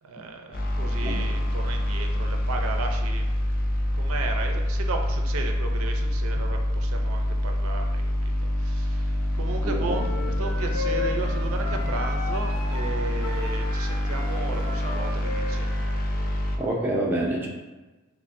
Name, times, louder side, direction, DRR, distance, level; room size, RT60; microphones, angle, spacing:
voice 1, 0.0-3.4 3.9-15.7, right 3 dB, 80° right, 3 dB, 0.5 m, -35 dB
sound 1, 0.5-16.6, left 1 dB, 40° left, 0.4 m, -26 dB
voice 2, 9.6-9.9 16.6-17.5, right 1 dB, 10° right, -3 dB, 0.5 m, -27 dB
sound 2, 9.9-16.4, left 4 dB, 85° left, 1.0 m, -36 dB
5.7 x 2.1 x 2.5 m, 1.2 s
head